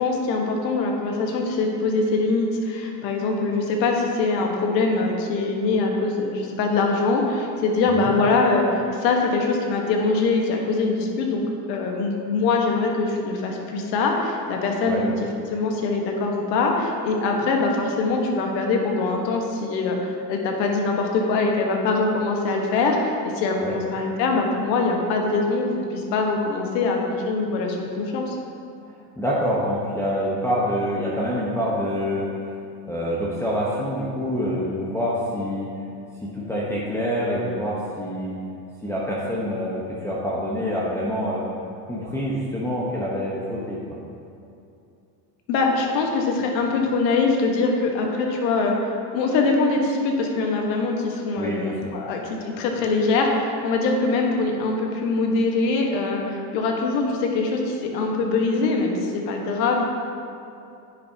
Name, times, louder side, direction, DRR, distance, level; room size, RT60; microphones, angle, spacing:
voice 1, 0.0-11.4 11.7-15.1 15.5-27.0 27.3-28.4 45.5-52.2 52.6-59.9, left 3 dB, 80° left, 1 dB, 1.4 m, -23 dB
voice 2, 29.2-32.3 32.9-35.7 36.2-38.4 38.8-41.5 41.8-44.0 51.4-52.0, equal, 5° left, -7 dB, 1.0 m, -26 dB
9.9 x 6.9 x 2.8 m, 2.6 s
supercardioid pair, 110°, 50 cm